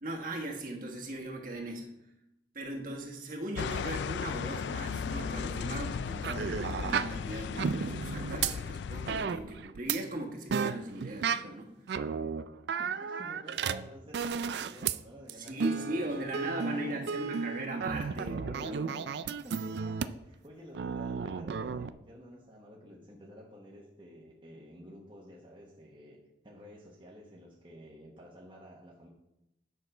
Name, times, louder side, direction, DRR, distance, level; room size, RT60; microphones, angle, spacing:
voice 1, 0.0-1.9 2.5-11.8 15.3-19.0, right 1 dB, 45° right, 0 dB, 1.4 m, -38 dB
sound 1, 3.5-9.3, left 6 dB, 70° left, 0.3 m, -36 dB
sound 2, 6.2-7.2 7.6-8.6 9.1-10.0 10.5-11.4 11.9-15.0 15.3-20.3 20.7-21.9, right 6 dB, 65° right, 0.3 m, -33 dB
voice 2, 12.8-17.4 17.9-18.1 18.8-26.2 26.4-29.1, equal, 25° right, -4 dB, 1.1 m, -51 dB
9.2 x 6.2 x 4.4 m, 0.87 s
head